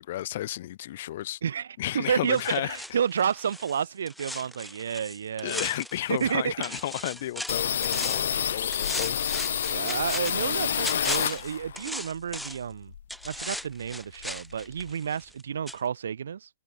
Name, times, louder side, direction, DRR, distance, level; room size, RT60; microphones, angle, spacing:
voice 1, 0.0-1.4 1.8-2.8 4.3-4.4 5.4-9.2, left 14 dB, 45° left, 1.8 m, -33 dB
voice 2, 1.4-5.6 6.1-6.8 8.3-8.6 9.7-12.9 13.2-16.5, right 7 dB, 80° right, 2.6 m, -30 dB
sound 1, 2.3-6.4 6.6-8.4 8.7-12.7 13.1-15.4 15.7-15.8, equal, ahead, 1.7 m, -38 dB
sound 2, 7.5-11.8 12.2-13.5 13.8-13.9 14.2-14.9, left 9 dB, 70° left, 2.7 m, -29 dB
hypercardioid pair, 160°, 0 cm